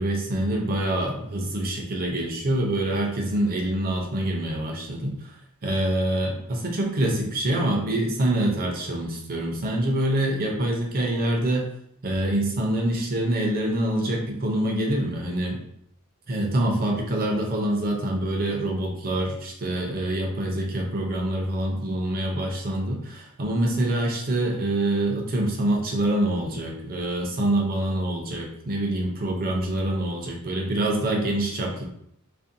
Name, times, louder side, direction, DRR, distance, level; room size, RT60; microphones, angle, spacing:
voice 1, 0.0-5.1 5.6-11.7 12.0-15.6 16.3-31.9, right 1 dB, 40° right, 0 dB, 0.5 m, -25 dB
2.5 x 2.1 x 2.6 m, 0.73 s
head